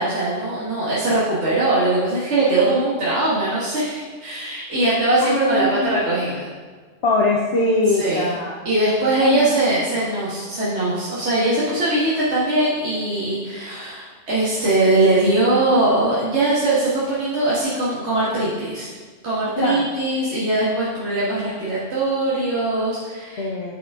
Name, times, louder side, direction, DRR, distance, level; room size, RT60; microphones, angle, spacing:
voice 1, 0.0-6.5 8.0-8.4 8.7-18.9 19.2-23.5, right 2 dB, 60° right, -9 dB, 2.0 m, -21 dB
voice 2, 5.2-6.0 7.0-8.6 9.2-9.5 19.5-19.9 23.4-23.7, left 2 dB, 60° left, -2 dB, 1.0 m, -22 dB
10.0 x 6.0 x 3.7 m, 1.5 s
omnidirectional pair, 1.3 m